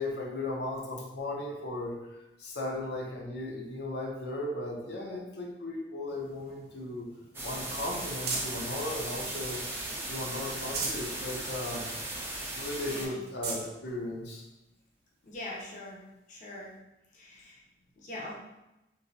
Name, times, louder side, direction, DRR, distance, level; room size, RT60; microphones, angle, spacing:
voice 1, 0.0-2.1 2.4-7.1 7.4-9.6 10.1-11.9 12.5-14.4, left 2 dB, 85° left, -1 dB, 0.6 m, -36 dB
sound 1, 6.1-8.7 9.3-10.0 10.4-11.1 11.6-11.7 12.0-12.1 12.7-12.8 13.2-13.7 14.5-14.6 16.4-16.5, right 3 dB, 70° right, 0.6 m, -38 dB
sound 2, 7.3-13.1, right 1 dB, 15° right, 0.4 m, -37 dB
voice 2, 15.2-16.0 16.3-16.7 17.1-17.6 18.0-18.4, left 1 dB, 45° left, -4 dB, 0.5 m, -42 dB
3.1 x 2.6 x 2.6 m, 0.95 s
head